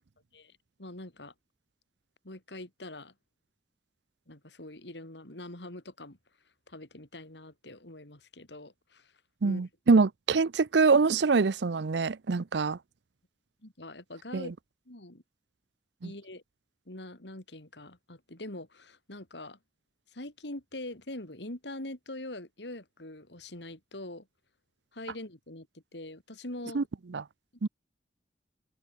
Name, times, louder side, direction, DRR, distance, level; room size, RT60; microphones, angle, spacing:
voice 1, 0.8-1.3 2.2-3.1 4.3-6.2 6.7-9.1 9.4-9.7 13.6-14.5 14.9-15.2 16.0-16.4 16.9-19.6 20.1-24.3 24.9-25.7 25.9-26.8, left 1 dB, 75° left, 3.8 m, -43 dB
voice 2, 9.4-12.8 14.3-14.5 16.0-16.1 26.7-26.8 27.1-27.2 27.6-27.7, right 4 dB, 75° right, 0.6 m, -24 dB
open air
head